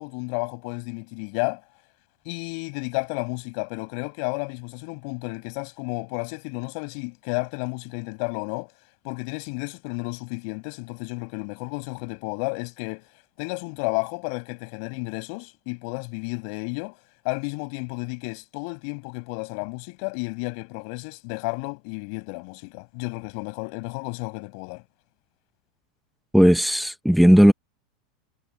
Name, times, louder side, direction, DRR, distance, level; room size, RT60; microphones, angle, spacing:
voice 1, 0.0-1.6 2.3-8.7 9.0-13.1 13.4-17.0 17.2-24.8, left 35 dB, 55° left, 7.5 m, -32 dB
voice 2, 26.3-27.5, equal, ahead, 1.0 m, -15 dB
supercardioid pair, 140°, 3 cm